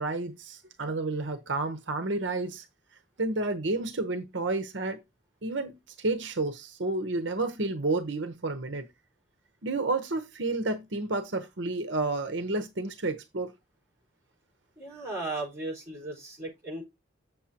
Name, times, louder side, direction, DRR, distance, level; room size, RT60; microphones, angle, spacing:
voice 1, 0.0-2.7 3.2-5.0 5.4-8.9 9.6-13.5, right 2 dB, 75° right, 0.9 m, -30 dB
voice 2, 14.8-16.8, right 2 dB, 15° right, 5.0 m, -36 dB
8.0 x 7.2 x 2.9 m
head